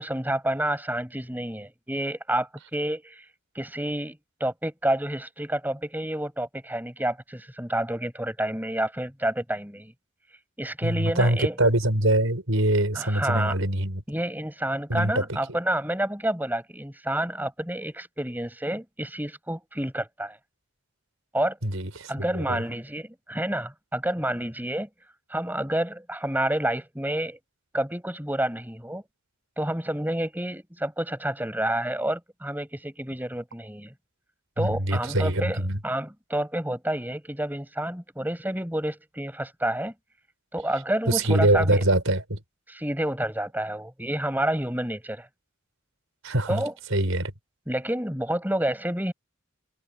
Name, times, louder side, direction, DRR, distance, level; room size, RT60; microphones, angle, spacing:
voice 1, 0.0-3.2 3.5-9.9 10.6-11.6 12.9-13.6 14.1-20.4 21.3-21.6 22.1-24.9 25.3-27.4 27.7-29.0 29.6-33.9 34.6-39.9 40.5-41.8 42.7-45.3 46.5-46.7 47.7-49.1, right 1 dB, 10° right, 6.3 m, -29 dB
voice 2, 10.8-14.0 14.9-15.4 21.6-22.6 34.6-35.8 41.1-42.4 46.2-46.6 46.9-47.3, right 1 dB, 75° right, 4.8 m, -24 dB
head